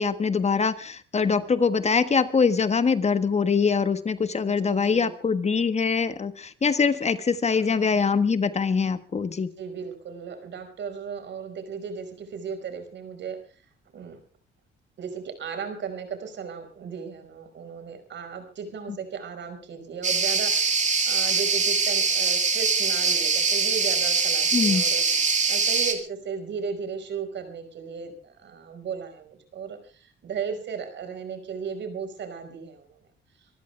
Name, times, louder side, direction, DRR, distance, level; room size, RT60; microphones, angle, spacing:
voice 1, 0.0-9.5 24.5-24.8, left 5 dB, 35° left, 12 dB, 1.4 m, -23 dB
voice 2, 4.6-5.1 7.7-8.1 9.6-13.4 13.9-14.2 15.0-33.0, right 6 dB, 65° right, 7 dB, 5.1 m, -36 dB
sound 1, 20.0-25.9, right 5 dB, 40° right, 3.3 m, -23 dB
25.5 x 14.5 x 3.4 m, 0.36 s
cardioid pair, 90°, 20 cm